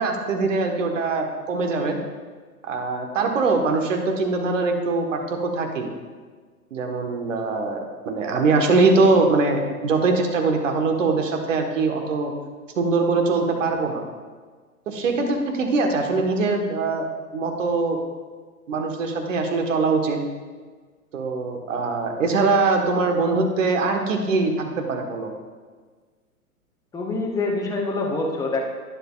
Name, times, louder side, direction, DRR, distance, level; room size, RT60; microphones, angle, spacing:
voice 1, 0.0-2.0 2.7-5.9 6.7-7.8 8.0-12.3 12.8-14.0 14.9-17.0 17.3-18.0 18.7-20.2 21.1-25.3, right 3 dB, 55° right, 3 dB, 1.4 m, -22 dB
voice 2, 26.9-28.6, left 3 dB, 10° left, -1 dB, 1.0 m, -25 dB
11.5 x 9.8 x 2.4 m, 1.5 s
figure-of-eight pair, 110°, 44 cm